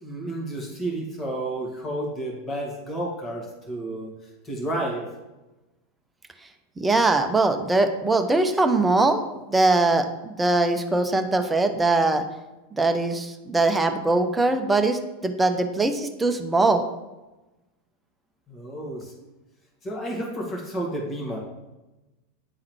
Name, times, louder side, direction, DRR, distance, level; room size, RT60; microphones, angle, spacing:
voice 1, 0.0-4.1 4.4-5.1 18.5-19.3 19.8-21.4, right 1 dB, 25° left, -1 dB, 1.9 m, -31 dB
voice 2, 6.8-12.2 12.7-16.8, right 2 dB, 10° right, 6 dB, 0.7 m, -22 dB
9.8 x 3.8 x 3.1 m, 1.0 s
figure-of-eight pair, 90°, 0 cm